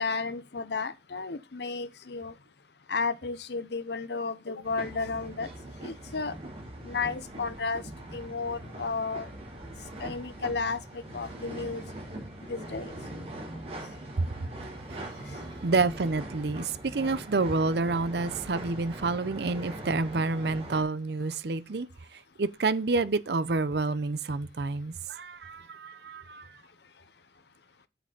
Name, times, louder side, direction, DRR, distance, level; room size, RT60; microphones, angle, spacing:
voice 1, 0.0-2.3 2.9-5.5 5.8-6.3 6.8-7.8 8.1-9.3 10.0-11.8 12.5-12.9 15.3-15.4, left 4 dB, 65° left, 0.7 m, -33 dB
sound 1, 4.6-20.8, right 1 dB, 35° right, 3.4 m, -42 dB
voice 2, 14.9-26.6, right 3 dB, 65° right, 0.6 m, -29 dB
7.9 x 7.6 x 3.9 m
head